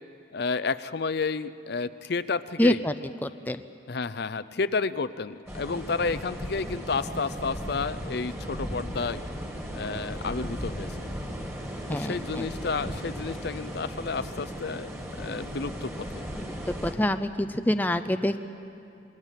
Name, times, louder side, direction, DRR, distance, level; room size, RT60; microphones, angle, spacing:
voice 1, 0.3-2.8 3.9-9.2 9.7-10.9 11.9-14.9 15.2-16.2, left 4 dB, 55° left, 14 dB, 0.5 m, -31 dB
voice 2, 2.6-2.9 3.2-3.6 11.9-12.5 16.3-18.4, left 1 dB, 10° left, 9 dB, 0.5 m, -26 dB
sound 1, 5.5-16.9, equal, 15° right, 2.4 m, -36 dB
sound 2, 10.1-15.6, right 1 dB, 30° right, 1.1 m, -47 dB
26.5 x 22.0 x 7.5 m, 2.6 s
head